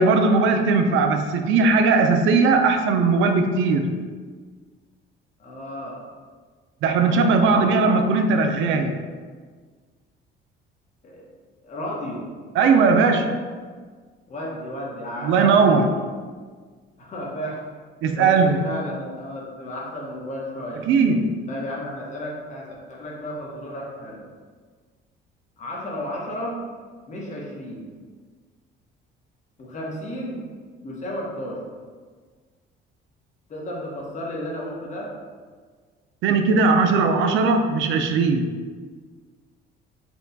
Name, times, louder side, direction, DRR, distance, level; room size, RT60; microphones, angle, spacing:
voice 1, 0.0-4.0 6.8-9.1 12.6-13.4 15.2-16.0 18.0-18.7 20.9-21.4 36.2-38.5, right 4 dB, 70° right, 6 dB, 0.4 m, -19 dB
voice 2, 5.4-6.0 7.1-7.8 11.0-11.3 11.6-12.3 14.3-15.9 17.0-17.6 18.1-20.8 21.5-24.2 25.6-26.6 27.1-27.9 29.6-30.4 30.8-31.6 33.5-35.1, left 1 dB, 35° left, -3 dB, 1.0 m, -33 dB
4.4 x 2.3 x 3.9 m, 1.5 s
cardioid pair, 135°, 21 cm